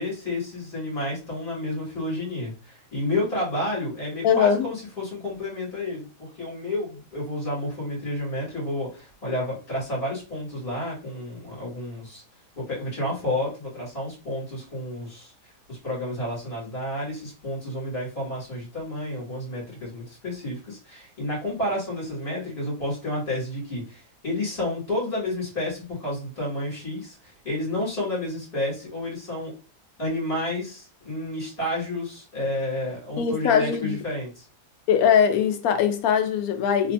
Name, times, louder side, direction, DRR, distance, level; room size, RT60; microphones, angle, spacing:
voice 1, 0.0-12.2 12.6-29.5 30.0-34.4, left 1 dB, 30° left, 2.3 m, -30 dB
voice 2, 4.2-4.7 33.2-34.0 34.9-36.9, left 8 dB, 70° left, 0.9 m, -21 dB
3.3 x 3.2 x 2.5 m
omnidirectional pair, 1.8 m